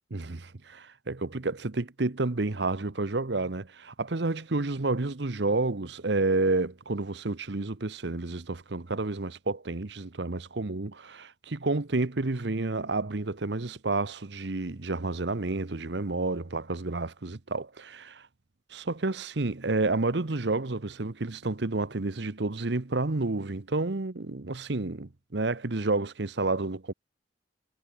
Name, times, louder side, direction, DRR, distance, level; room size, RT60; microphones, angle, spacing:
voice 1, 0.1-18.3 18.7-26.9, right 3 dB, 70° right, 1.0 m, -30 dB
head